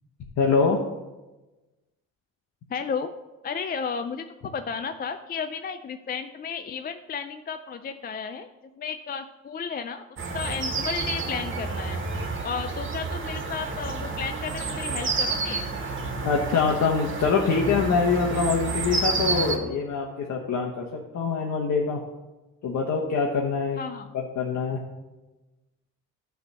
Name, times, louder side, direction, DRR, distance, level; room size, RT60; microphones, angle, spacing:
voice 1, 0.4-0.8 16.2-22.0 22.6-23.8 24.1-24.8, left 5 dB, 65° left, -1 dB, 1.1 m, -24 dB
voice 2, 2.7-3.1 3.4-4.2 4.5-8.5 8.8-10.0 10.3-12.0 12.4-15.7 23.8-24.1, left 6 dB, 30° left, 8 dB, 0.4 m, -33 dB
sound 1, 10.2-19.6, right 4 dB, 40° right, 1.5 m, -30 dB
10.5 x 3.5 x 6.6 m, 1.1 s
cardioid pair, 90°, 30 cm